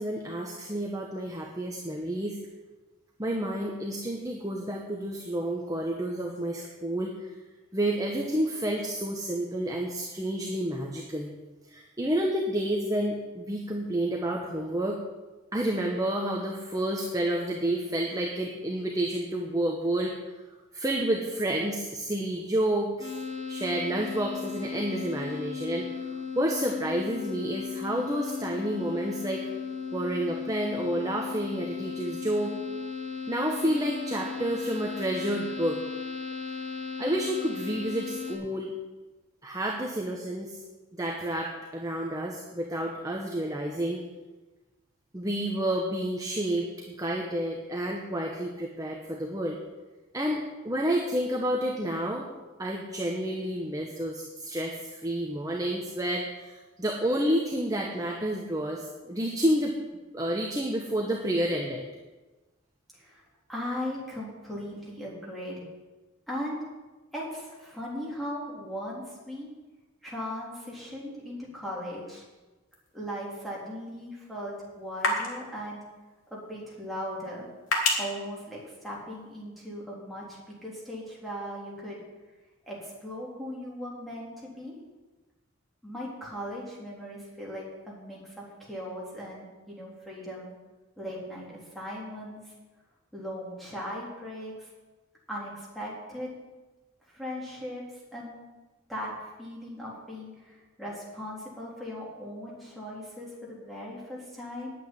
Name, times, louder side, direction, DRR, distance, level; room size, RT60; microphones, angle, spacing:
voice 1, 0.0-2.4 3.2-7.3 7.7-11.3 11.7-15.0 15.5-20.2 20.7-23.1 23.5-25.9 26.3-29.5 29.9-32.5 33.3-35.8 37.0-38.7 39.4-40.6 41.0-44.0 45.1-49.6 50.1-52.3 52.6-59.8 60.1-61.8, right 1 dB, 15° right, 0 dB, 1.1 m, -30 dB
sound 1, 23.0-38.4, left 5 dB, 20° left, 4.3 m, -36 dB
voice 2, 63.5-65.6 66.3-66.6 67.1-69.5 70.0-72.2 72.9-75.9 76.3-77.5 78.0-82.0 82.6-84.7 85.8-90.5 91.0-92.5 93.1-94.7 95.3-96.3 97.1-97.8 98.1-98.4 98.9-104.7, equal, ahead, -6 dB, 3.7 m, -38 dB
sound 2, 72.7-79.4, left 2 dB, 75° left, 2.9 m, -35 dB
9.0 x 8.9 x 9.8 m, 1.2 s
head